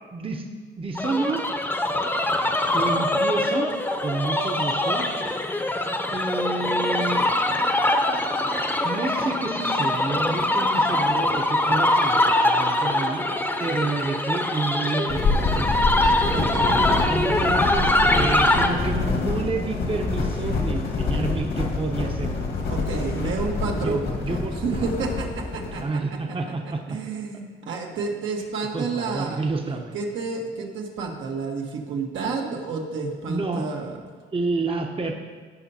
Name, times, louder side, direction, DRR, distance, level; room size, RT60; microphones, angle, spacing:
voice 1, 0.1-0.5 0.8-1.4 2.7-3.7 4.0-5.1 6.1-7.2 8.8-13.3 13.6-15.7 17.1-22.3 23.1-23.3 23.7-24.9 25.8-27.0 28.7-29.9 33.3-33.7 34.3-35.1, right 3 dB, 25° right, 3 dB, 0.8 m, -29 dB
sound 1, 0.9-18.7, left 1 dB, 10° left, 0.8 m, -23 dB
sound 2, 15.1-25.8, left 3 dB, 70° left, 1.7 m, -26 dB
voice 2, 16.3-16.9 22.6-26.5 26.9-29.4 29.9-34.2, right 4 dB, 75° right, 0 dB, 1.4 m, -30 dB
16.5 x 5.6 x 2.8 m, 1.5 s
cardioid pair, 90°, 20 cm